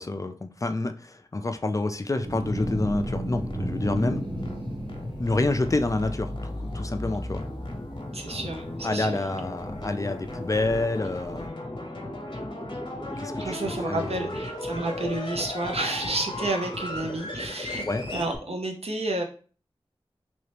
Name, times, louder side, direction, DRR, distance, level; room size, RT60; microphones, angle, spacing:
voice 1, 0.0-4.2 5.2-7.4 8.8-11.6 13.2-13.5 13.9-14.2 17.9-18.0, left 2 dB, 30° left, 8 dB, 0.4 m, -28 dB
sound 1, 2.2-11.5, right 1 dB, 50° right, 1.1 m, -37 dB
sound 2, 2.5-18.4, left 1 dB, 50° left, 0.9 m, -35 dB
voice 2, 8.1-9.2 13.4-17.8 18.1-19.2, right 2 dB, 75° right, 2 dB, 0.7 m, -30 dB
3.2 x 2.7 x 3.3 m, 0.39 s
wide cardioid pair, 65°, 10 cm